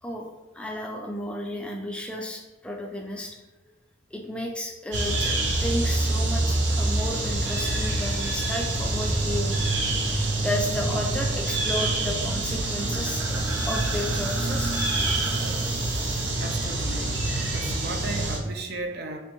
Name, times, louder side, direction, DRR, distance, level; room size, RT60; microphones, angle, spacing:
voice 1, 0.5-3.4 4.1-9.6 10.4-14.8, left 1 dB, 5° left, 1 dB, 0.4 m, -33 dB
sound 1, 4.9-18.4, right 2 dB, 75° right, 0.8 m, -26 dB
voice 2, 16.4-17.2 17.5-19.2, right 2 dB, 55° right, 4 dB, 0.4 m, -35 dB
3.3 x 2.9 x 3.0 m, 1.1 s
head